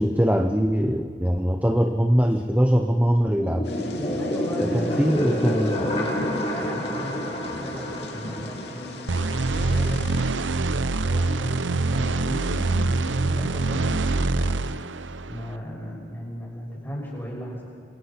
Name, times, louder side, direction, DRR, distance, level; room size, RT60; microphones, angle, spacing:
voice 1, 0.0-3.7 4.6-5.8, equal, 10° right, 4 dB, 0.8 m, -22 dB
sound 1, 3.3-9.8, equal, 35° left, 5.4 m, -29 dB
Thunder / Rain, 3.6-10.3, left 1 dB, 60° left, 2.6 m, -37 dB
voice 2, 4.1-6.1 6.5-7.2 7.5-9.0 9.5-10.3 10.6-14.6 15.3-17.7, left 1 dB, 10° left, -2 dB, 6.1 m, -36 dB
sound 2, 9.1-15.5, right 3 dB, 80° right, 0.7 m, -25 dB
27.5 x 22.5 x 6.0 m, 2.2 s
head